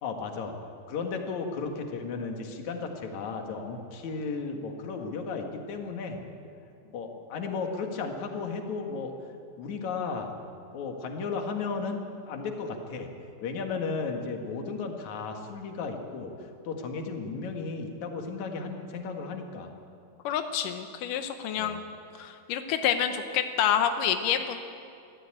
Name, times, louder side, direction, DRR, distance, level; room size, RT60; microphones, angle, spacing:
voice 1, 0.0-0.6 0.9-6.2 6.9-9.1 9.6-10.3 10.7-13.1 13.4-16.3 16.6-19.7 21.5-21.8, left 4 dB, 55° left, 3 dB, 2.4 m, -34 dB
voice 2, 20.2-21.8 22.2-24.6, left 9 dB, 90° left, 7 dB, 1.8 m, -28 dB
23.0 x 14.5 x 8.9 m, 2.6 s
omnidirectional pair, 5.2 m